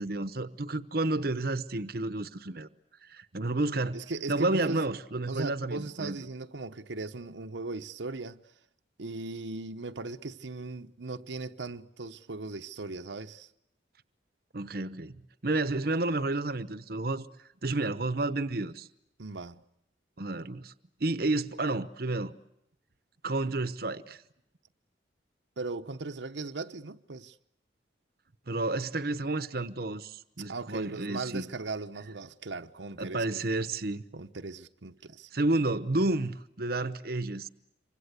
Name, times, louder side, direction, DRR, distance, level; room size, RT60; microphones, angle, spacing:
voice 1, 0.0-2.7 3.1-4.0 4.3-6.2 14.5-17.3 17.6-18.9 20.2-20.7 21.0-22.3 23.2-24.2 28.5-31.4 33.0-34.0 35.3-37.5, right 2 dB, 55° right, 1.0 m, -31 dB
voice 2, 3.9-4.9 5.3-8.4 9.0-13.5 19.2-19.6 25.6-27.4 30.5-33.4 34.1-35.3, right 3 dB, 85° right, 1.0 m, -38 dB
27.0 x 25.0 x 8.2 m
head